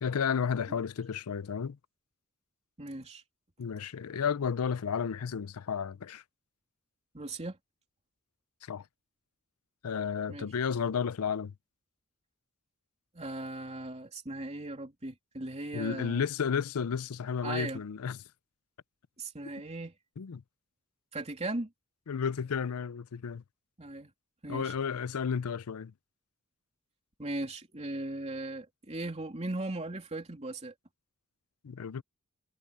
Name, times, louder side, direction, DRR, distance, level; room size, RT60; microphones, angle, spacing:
voice 1, 0.0-1.8 3.6-6.2 8.7-8.8 9.8-11.5 15.7-18.2 20.2-20.4 22.1-23.4 24.5-25.9 31.6-32.0, left 6 dB, 80° left, 0.5 m, -32 dB
voice 2, 2.8-3.2 7.1-7.6 10.3-10.5 13.1-16.2 17.4-17.8 19.2-19.9 21.1-21.7 23.8-24.1 24.4-24.7 27.2-30.7, right 2 dB, 30° right, 3.1 m, -38 dB
head